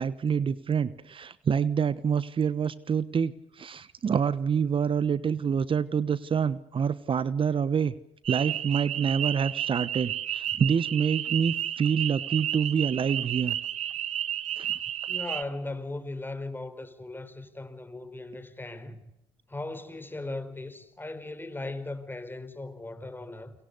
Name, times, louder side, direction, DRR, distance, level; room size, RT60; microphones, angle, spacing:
voice 1, 0.0-7.9 8.3-13.6 14.6-14.7, right 7 dB, 45° right, 1.1 m, -27 dB
sound 1, 8.2-15.4, right 11 dB, 65° right, 1.4 m, -32 dB
voice 2, 15.1-19.1 19.5-23.5, left 2 dB, 15° left, 4.2 m, -38 dB
29.5 x 23.5 x 6.8 m
supercardioid pair, 60°, 12 cm